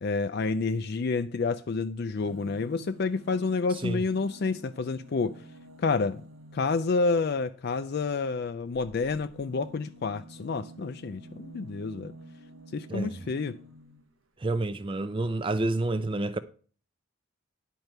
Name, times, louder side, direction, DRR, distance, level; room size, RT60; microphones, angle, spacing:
voice 1, 0.0-5.4 5.8-6.2 6.5-12.1 12.7-13.6, left 4 dB, 50° left, 0.4 m, -29 dB
sound 1, 2.1-7.0 8.6-14.1 15.0-15.1 15.3-15.4, right 1 dB, 85° right, 1.2 m, -50 dB
voice 2, 14.4-16.4, right 2 dB, 25° right, 0.4 m, -29 dB
10.5 x 4.6 x 6.6 m
head